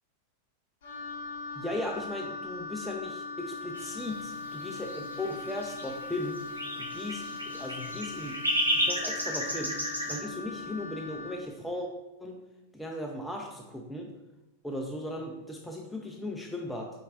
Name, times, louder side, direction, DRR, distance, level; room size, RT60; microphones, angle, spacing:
Wind instrument woodwind instrument, 0.8-11.5, left 3 dB, 60° left, 0.8 m, -40 dB
voice 1, 1.6-6.4 6.8-11.9 12.2-12.4 12.7-14.1 14.6-16.9, left 1 dB, 5° left, 0 dB, 0.4 m, -37 dB
sound 1, 3.7-10.2, equal, 85° right, 0.7 m, -33 dB
4.4 x 3.7 x 2.8 m, 0.99 s
figure-of-eight pair, 90°, 0 cm